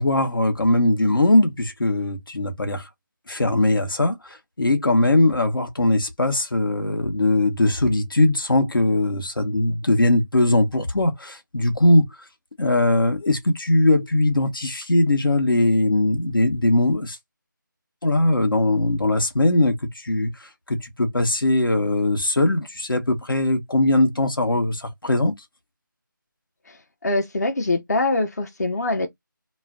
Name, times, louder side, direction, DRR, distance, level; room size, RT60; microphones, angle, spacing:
voice 1, 0.0-2.8 3.3-12.0 12.6-17.2 18.0-19.7 20.0-20.3 20.7-25.3, left 1 dB, 90° left, 0.9 m, -20 dB
voice 2, 27.0-29.1, left 2 dB, 50° left, 0.7 m, -23 dB
2.3 x 2.1 x 3.5 m
figure-of-eight pair, 170°, 11 cm